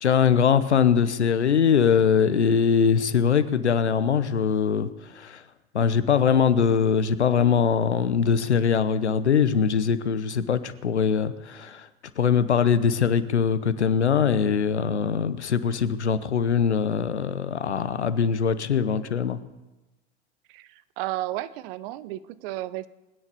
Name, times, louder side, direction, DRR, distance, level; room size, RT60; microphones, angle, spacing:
voice 1, 0.0-4.9 5.1-5.4 5.7-11.9 12.2-19.4, left 7 dB, 80° left, 13 dB, 0.9 m, -22 dB
voice 2, 21.0-22.9, right 15 dB, 55° right, 16 dB, 0.8 m, -32 dB
20.5 x 9.8 x 6.9 m, 1.1 s
figure-of-eight pair, 65°, 33 cm